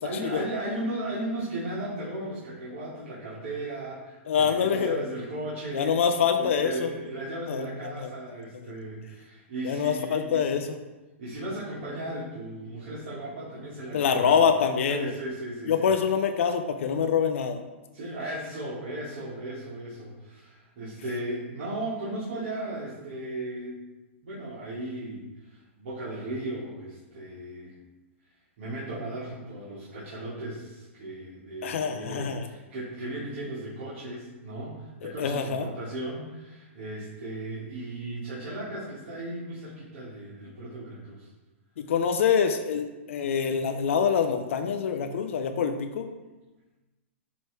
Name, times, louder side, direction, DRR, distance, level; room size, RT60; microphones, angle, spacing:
voice 1, 0.0-6.0 6.4-10.6 11.2-14.3 14.9-15.9 17.9-23.8 24.2-27.7 28.6-41.3, right 1 dB, 60° right, -8 dB, 1.9 m, -36 dB
voice 2, 4.3-5.0 5.7-6.9 7.5-8.1 9.6-10.7 13.9-15.1 15.7-17.6 31.6-32.4 35.0-35.7 41.8-46.1, left 7 dB, 75° left, 6 dB, 0.5 m, -25 dB
8.9 x 3.1 x 3.4 m, 1.1 s
hypercardioid pair, 135°, 7 cm